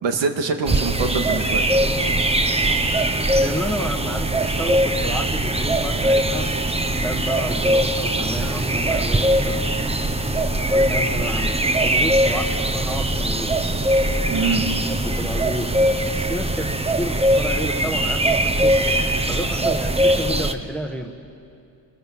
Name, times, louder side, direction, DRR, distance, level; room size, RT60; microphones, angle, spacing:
voice 1, 0.0-1.7 14.3-14.7, right 4 dB, 70° right, 5 dB, 2.2 m, -24 dB
sound 1, 0.7-20.5, right 1 dB, 15° right, 1.1 m, -21 dB
Organ, 1.7-12.5, right 3 dB, 55° right, 4.1 m, -39 dB
voice 2, 3.4-6.5 7.0-10.2 10.7-13.6 14.3-15.7 16.2-18.9 19.3-21.1, equal, ahead, 4 dB, 1.4 m, -31 dB
28.0 x 21.0 x 7.6 m, 2.5 s
cardioid pair, 120°, 46 cm